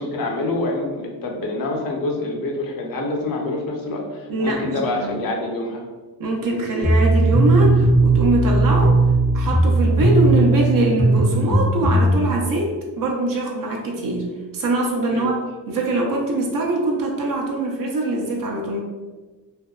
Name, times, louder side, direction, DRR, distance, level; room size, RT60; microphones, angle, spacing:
voice 1, 0.0-5.8 15.1-15.3, left 2 dB, 50° left, 0 dB, 0.6 m, -26 dB
voice 2, 4.3-5.2 6.2-9.0 9.3-14.3 14.5-15.4 15.7-18.8, right 2 dB, 50° right, -1 dB, 0.6 m, -23 dB
sound 1, 6.8-12.1, right 2 dB, 10° left, 0.4 m, -17 dB
2.6 x 2.1 x 2.3 m, 1.3 s
supercardioid pair, 80°, 45 cm